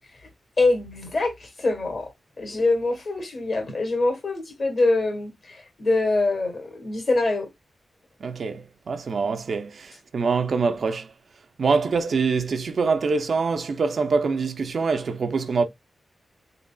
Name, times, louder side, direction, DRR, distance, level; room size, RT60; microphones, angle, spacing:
voice 1, 0.6-2.1 2.4-7.5, left 2 dB, 45° left, 1.4 m, -24 dB
voice 2, 8.2-11.1 11.6-15.7, right 4 dB, 55° right, 0.5 m, -24 dB
3.9 x 3.8 x 2.2 m
wide cardioid pair, 170°, 0 cm